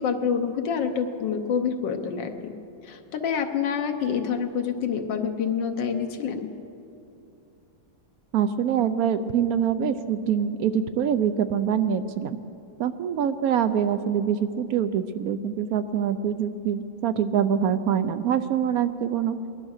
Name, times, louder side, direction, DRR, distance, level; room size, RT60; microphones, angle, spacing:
voice 1, 0.0-2.5 2.8-6.4, left 7 dB, 75° left, 5 dB, 1.6 m, -27 dB
voice 2, 8.3-12.4 12.8-19.4, right 8 dB, 75° right, 11 dB, 0.8 m, -24 dB
19.5 x 11.5 x 6.4 m, 2.7 s
omnidirectional pair, 2.0 m